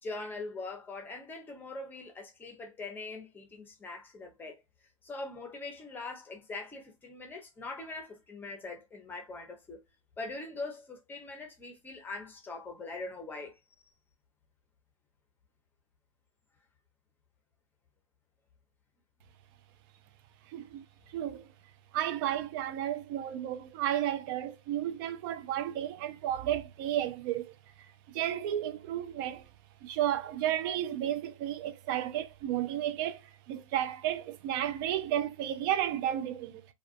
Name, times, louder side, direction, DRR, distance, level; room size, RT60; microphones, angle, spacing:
voice 1, 0.0-4.6 5.0-9.8 10.2-13.6, left 3 dB, 10° left, 0.7 m, -42 dB
voice 2, 20.5-21.5 21.9-29.5 29.8-36.7, right 11 dB, 40° right, 0.4 m, -33 dB
2.4 x 2.3 x 2.4 m
hypercardioid pair, 125°, 17 cm